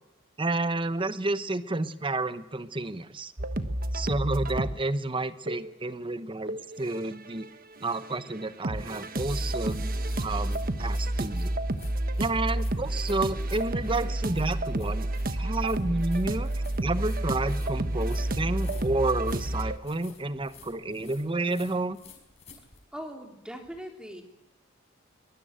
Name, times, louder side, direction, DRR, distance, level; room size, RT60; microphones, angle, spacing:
voice 1, 0.4-3.3 3.9-7.5 7.8-9.9 10.2-11.5 12.2-16.5 16.8-22.0, right 2 dB, 25° right, 13 dB, 1.0 m, -30 dB
sound 1, 3.4-4.8 5.5-5.8 6.5-7.5 7.7-19.8, right 1 dB, 45° right, 1.4 m, -30 dB
sound 2, 8.8-22.8, left 4 dB, 30° left, 5.4 m, -53 dB
voice 2, 22.9-24.2, equal, 5° right, 3 dB, 3.4 m, -40 dB
22.5 x 20.5 x 9.0 m, 0.88 s
head